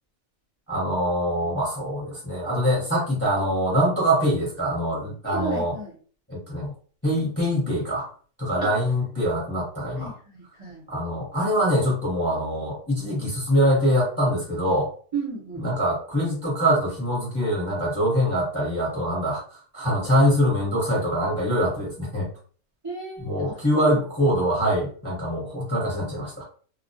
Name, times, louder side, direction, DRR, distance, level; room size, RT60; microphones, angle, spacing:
voice 1, 0.7-5.8 6.3-6.7 7.0-8.1 8.4-10.1 10.9-14.9 15.6-22.3 23.2-26.4, equal, 15° left, -5 dB, 0.7 m, -24 dB
voice 2, 5.2-5.9 8.6-8.7 10.0-10.8 15.1-15.6 22.8-24.0, right 4 dB, 30° right, -5 dB, 0.6 m, -33 dB
2.3 x 2.1 x 2.6 m, 0.44 s
omnidirectional pair, 1.4 m